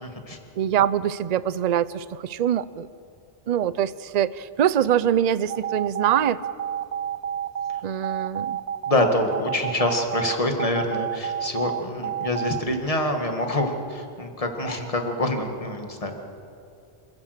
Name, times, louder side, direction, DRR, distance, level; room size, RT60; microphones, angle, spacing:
voice 1, 0.0-0.4 8.9-16.1, left 1 dB, 35° left, 4 dB, 2.0 m, -26 dB
voice 2, 0.6-2.9 3.5-6.4 7.8-8.6, right 10 dB, 50° right, 17 dB, 0.6 m, -23 dB
sound 1, 5.5-12.7, right 9 dB, 90° right, 0.9 m, -29 dB
26.5 x 16.0 x 6.6 m, 2.4 s
omnidirectional pair, 1.1 m